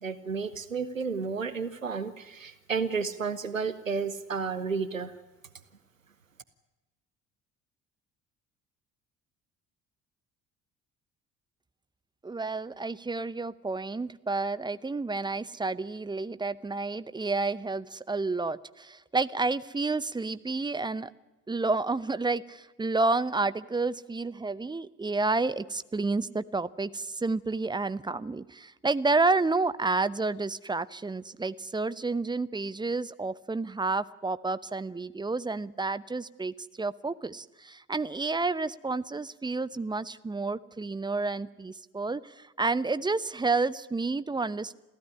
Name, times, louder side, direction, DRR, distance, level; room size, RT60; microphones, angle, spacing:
voice 1, 0.0-5.2, right 5 dB, 85° right, 14 dB, 0.8 m, -32 dB
voice 2, 12.2-21.1 21.5-44.8, right 3 dB, 10° right, 16 dB, 0.8 m, -30 dB
27.0 x 15.5 x 9.9 m, 1.1 s
figure-of-eight pair, 55°, 39 cm